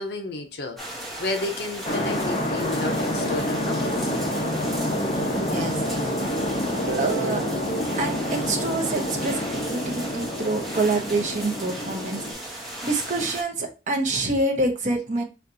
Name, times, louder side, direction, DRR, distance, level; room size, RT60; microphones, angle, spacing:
voice 1, 0.0-4.0 5.4-5.5, left 2 dB, 60° left, 0.8 m, -32 dB
sound 1, 0.8-13.4, right 1 dB, ahead, 1.0 m, -37 dB
sound 2, 1.8-12.3, left 1 dB, 35° left, 0.9 m, -28 dB
voice 2, 5.3-5.8 6.0-6.1 7.0-7.4 8.0-15.2, right 2 dB, 40° right, 0.8 m, -27 dB
Guitar, 6.9-9.8, right 6 dB, 70° right, 0.4 m, -37 dB
4.3 x 3.2 x 2.6 m
head